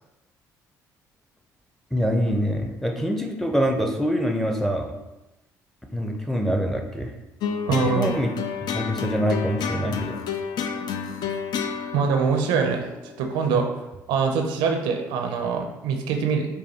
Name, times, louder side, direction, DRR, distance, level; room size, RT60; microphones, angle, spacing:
voice 1, 1.9-4.9 5.9-7.1 7.7-8.3 8.7-10.2, equal, 5° left, 3 dB, 0.6 m, -25 dB
sound 1, 7.4-13.9, left 6 dB, 60° left, 0.4 m, -30 dB
voice 2, 7.7-8.2 11.9-12.9 13.2-13.7 14.1-16.5, right 5 dB, 80° right, 4 dB, 0.4 m, -23 dB
4.9 x 2.3 x 2.8 m, 1.0 s
hypercardioid pair, 60°, 8 cm